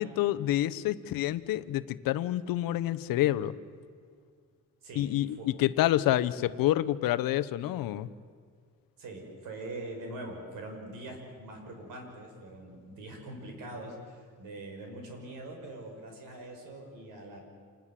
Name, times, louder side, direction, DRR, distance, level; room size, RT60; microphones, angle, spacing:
voice 1, 0.0-3.5 4.9-8.1, left 14 dB, 80° left, 15 dB, 1.0 m, -28 dB
voice 2, 9.0-17.4, right 2 dB, 70° right, 2 dB, 6.2 m, -43 dB
27.5 x 20.0 x 7.6 m, 2.1 s
cardioid pair, 160°, 34 cm